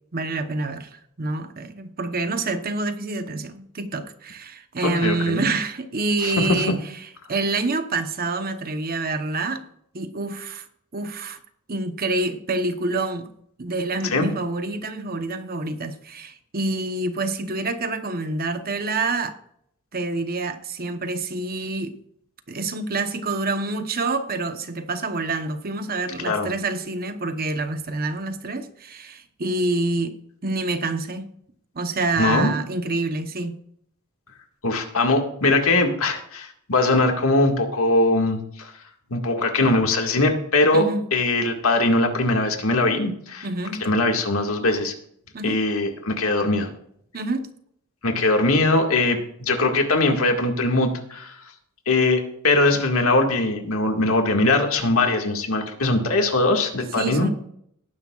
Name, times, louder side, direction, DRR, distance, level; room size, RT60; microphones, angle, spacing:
voice 1, 0.1-6.8 7.3-9.6 9.9-10.6 10.9-11.4 11.7-13.3 13.6-19.4 19.9-22.0 22.5-30.1 30.4-31.3 31.7-33.5 39.1-39.2 40.7-41.0 43.4-43.8 45.3-45.6 47.1-47.5 57.0-57.3, right 2 dB, 45° right, 1.0 m, -27 dB
voice 2, 4.8-5.4 6.2-6.5 14.0-14.3 26.2-26.5 32.2-32.5 34.6-38.7 39.1-43.5 43.8-44.9 45.4-46.7 48.0-51.4 51.9-57.3, left 2 dB, 80° left, 1.9 m, -21 dB
18.5 x 10.0 x 2.4 m
head